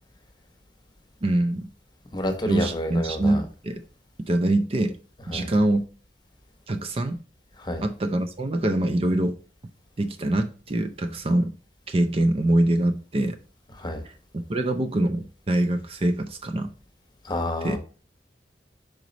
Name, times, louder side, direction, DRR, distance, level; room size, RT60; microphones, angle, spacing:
voice 1, 1.2-1.7 2.5-3.8 4.3-5.0 5.3-5.8 6.7-7.2 7.8-9.3 10.0-11.5 11.9-13.4 14.0-14.1 14.5-16.7 17.6-17.8, right 1 dB, 35° right, 0.5 m, -24 dB
voice 2, 2.1-3.4 5.3-5.5 7.6-7.8 13.8-14.0 17.2-17.8, left 1 dB, 25° left, 1.1 m, -29 dB
5.1 x 4.7 x 4.0 m
head